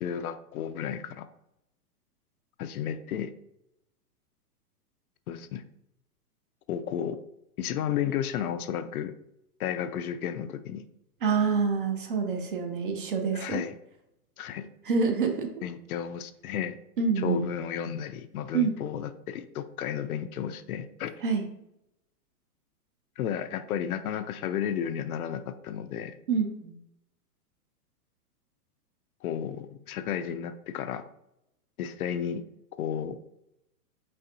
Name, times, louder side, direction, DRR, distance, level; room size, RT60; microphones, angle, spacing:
voice 1, 0.0-1.3 2.6-3.3 5.3-5.6 6.7-7.2 7.6-9.1 9.6-10.9 13.3-13.7 14.4-14.7 15.6-16.8 17.2-21.1 23.2-26.2 29.2-31.0 31.8-32.4 32.8-33.2, left 9 dB, 65° left, 11 dB, 0.5 m, -33 dB
voice 2, 11.2-13.6 14.9-15.5 17.0-17.4 18.5-18.7 21.2-21.4 26.3-26.7, right 5 dB, 35° right, 5 dB, 0.4 m, -26 dB
5.6 x 3.3 x 2.7 m, 0.82 s
hypercardioid pair, 155°, 48 cm